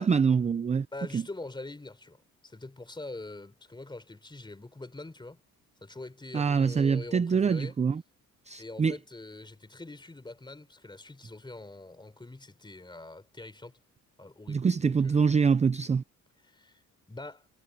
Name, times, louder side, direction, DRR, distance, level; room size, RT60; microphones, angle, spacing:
voice 1, 0.0-0.9 1.1-1.2 6.3-8.0 8.5-9.0 14.5-16.0, right 5 dB, 20° right, 0.5 m, -25 dB
voice 2, 0.9-5.4 5.8-7.8 8.6-13.8 14.2-15.3 16.4-16.8 17.1-17.5, left 2 dB, 15° left, 4.0 m, -44 dB
cardioid pair, 120°, 33 cm